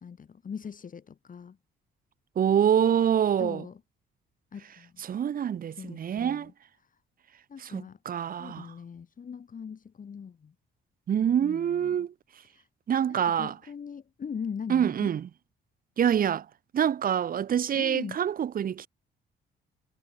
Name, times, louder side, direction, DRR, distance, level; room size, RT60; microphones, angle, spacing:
voice 1, 0.0-1.6 3.2-3.8 4.5-5.0 5.7-6.5 7.5-8.0 8.4-10.5 11.4-12.1 12.5-12.7 13.1-15.1 17.7-18.2, left 6 dB, 45° left, 2.5 m, -40 dB
voice 2, 2.4-3.6 5.0-6.5 7.6-8.7 11.1-12.1 12.9-13.5 14.7-15.3 16.0-16.5 16.7-18.9, right 9 dB, 45° right, 0.7 m, -26 dB
cardioid pair, 90°, 20 cm